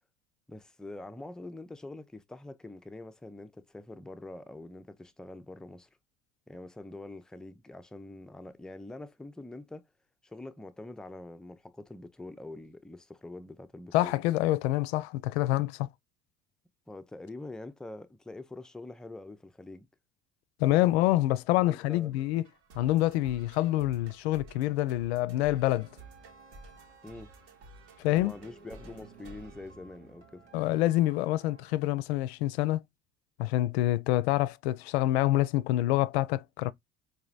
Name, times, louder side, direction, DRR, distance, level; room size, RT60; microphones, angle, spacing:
voice 1, 0.5-5.9 6.5-9.8 10.2-14.1 16.9-19.9 21.5-22.1 27.0-27.3 28.1-30.5, left 2 dB, ahead, 0.3 m, -45 dB
voice 2, 13.9-15.9 20.6-22.5 22.7-25.9 28.0-28.3 30.5-32.8 33.4-36.7, left 15 dB, 65° left, 0.5 m, -26 dB
sound 1, 21.9-30.5, right 3 dB, 60° right, 1.2 m, -53 dB
sound 2, 25.7-31.7, right 3 dB, 90° right, 1.0 m, -56 dB
4.9 x 2.6 x 2.4 m
figure-of-eight pair, 60°, 34 cm